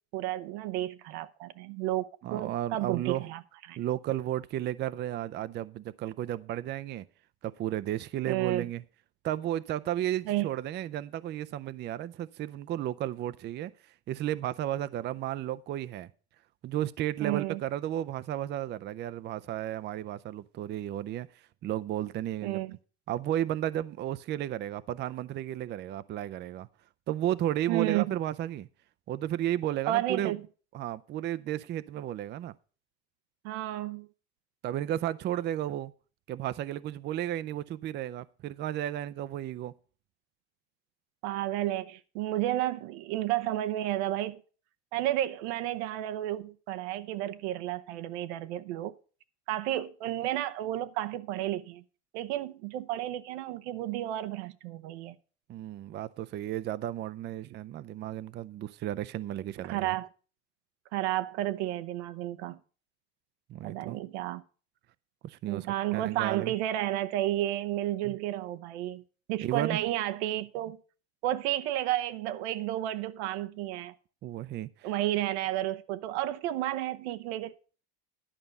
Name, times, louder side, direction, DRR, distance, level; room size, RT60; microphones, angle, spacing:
voice 1, 0.1-3.4 3.7-3.8 8.3-8.7 10.3-10.5 17.2-17.6 22.4-22.8 27.7-28.1 29.9-30.4 33.4-34.1 41.2-44.4 44.9-48.9 49.5-51.8 52.1-55.2 59.6-60.1 60.9-62.6 63.6-64.4 65.5-69.0 69.3-70.8 71.2-73.9 74.8-77.5, right 14 dB, 90° right, 0.9 m, -32 dB
voice 2, 2.2-3.2 3.8-7.0 7.4-8.8 9.2-13.7 14.1-16.1 16.6-22.6 23.1-26.7 27.1-28.7 29.1-30.3 30.7-32.5 34.6-35.9 36.3-39.7 55.5-60.0 63.5-64.0 65.2-66.5 68.0-68.2 69.4-69.8 74.2-74.9, right 12 dB, 35° right, 0.4 m, -33 dB
11.0 x 5.3 x 6.9 m
cardioid pair, 125°, 32 cm